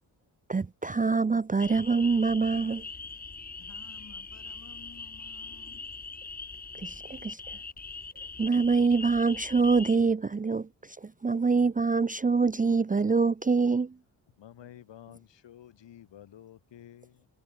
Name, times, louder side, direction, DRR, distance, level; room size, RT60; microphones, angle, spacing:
voice 1, 0.5-2.8 6.8-7.6 8.4-13.9, right 4 dB, 20° right, 0.6 m, -25 dB
sound 1, 1.6-10.0, left 4 dB, 20° left, 1.0 m, -42 dB
voice 2, 3.4-5.8, left 5 dB, 40° left, 6.4 m, -55 dB
voice 3, 14.4-17.3, left 11 dB, 80° left, 5.7 m, -51 dB
cardioid pair, 65°, 43 cm